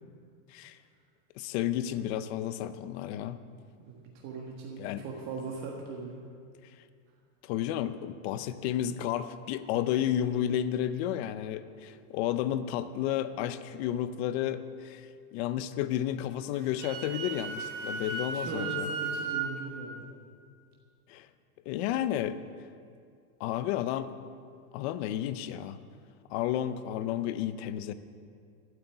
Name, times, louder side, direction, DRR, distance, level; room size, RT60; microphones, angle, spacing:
voice 1, 1.4-3.4 4.8-5.0 7.4-18.9 21.1-21.3 21.7-22.4 23.4-24.1 24.7-25.8 26.3-27.9, left 11 dB, 45° left, 13 dB, 0.6 m, -32 dB
voice 2, 3.8-6.2 18.3-20.0, right 3 dB, 35° right, -1 dB, 1.6 m, -39 dB
Wind instrument woodwind instrument, 16.5-19.5, right 5 dB, 60° right, 3.5 m, -35 dB
12.5 x 8.3 x 9.8 m, 2.2 s
supercardioid pair, 170°, 45 cm